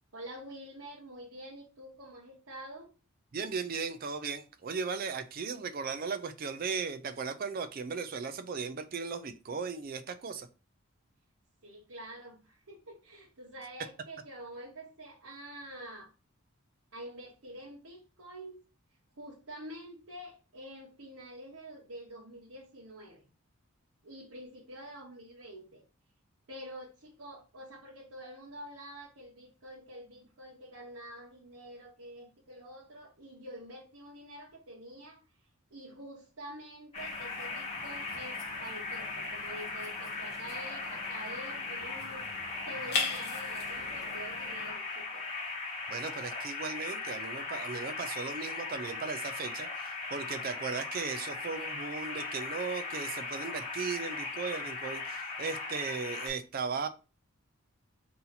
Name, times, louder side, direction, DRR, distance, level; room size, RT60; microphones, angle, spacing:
voice 1, 0.1-2.9 11.6-16.1 16.9-18.5 19.2-23.3 24.0-25.8 26.5-35.4 35.7-45.3, right 1 dB, 80° right, 1.1 m, -47 dB
voice 2, 3.3-10.5 45.9-56.9, right 5 dB, 40° right, 0.4 m, -37 dB
sound 1, 36.9-56.3, left 3 dB, 25° left, 1.5 m, -38 dB
sound 2, 37.0-44.7, left 4 dB, 45° left, 1.0 m, -41 dB
3.9 x 2.8 x 4.0 m
head